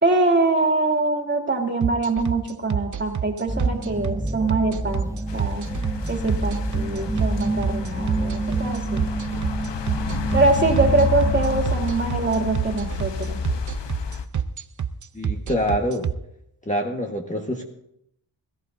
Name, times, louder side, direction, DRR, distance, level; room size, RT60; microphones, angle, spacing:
voice 1, 0.0-5.7 6.1-9.0 10.3-13.4, right 3 dB, 25° right, 1 dB, 2.6 m, -23 dB
sound 1, 1.8-16.1, right 8 dB, 40° right, 0.7 m, -27 dB
sound 2, 3.5-11.6, right 2 dB, 5° right, 0.7 m, -29 dB
sound 3, 5.3-14.2, left 6 dB, 65° left, 1.0 m, -30 dB
voice 2, 15.1-16.1 16.7-17.6, equal, 15° left, 1 dB, 1.5 m, -25 dB
21.0 x 14.5 x 2.7 m, 0.77 s
wide cardioid pair, 110°, 47 cm